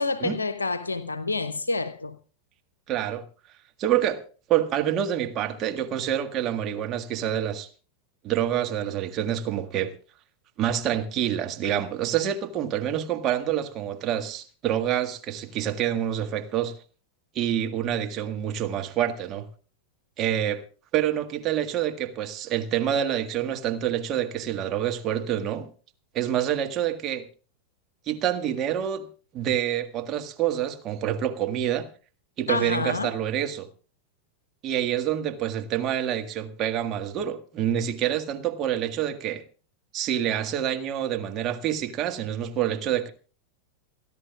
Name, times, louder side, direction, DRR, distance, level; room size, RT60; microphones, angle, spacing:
voice 1, 0.0-2.2 32.5-33.2, left 3 dB, 75° left, 0.7 m, -28 dB
voice 2, 2.9-3.2 3.8-4.2 4.5-7.7 8.2-9.9 10.6-16.7 17.3-19.5 20.2-20.6 20.9-25.7 26.1-27.3 28.1-29.1 29.3-31.9 32.4-33.7 34.6-39.4 39.9-43.1, right 10 dB, 30° right, 1.7 m, -27 dB
28.0 x 11.0 x 2.4 m
figure-of-eight pair, 90°, 0 cm